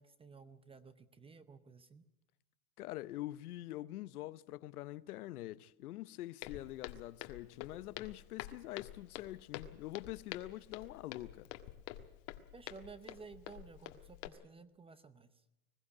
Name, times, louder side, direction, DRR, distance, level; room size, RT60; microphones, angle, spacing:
voice 1, 0.0-2.0 12.5-15.3, right 5 dB, 15° right, 0.7 m, -54 dB
voice 2, 2.8-11.5, left 16 dB, 85° left, 0.9 m, -45 dB
Walk footsteps, 6.4-14.3, left 14 dB, 60° left, 1.6 m, -48 dB
20.5 x 15.0 x 9.7 m
supercardioid pair, 135°, 43 cm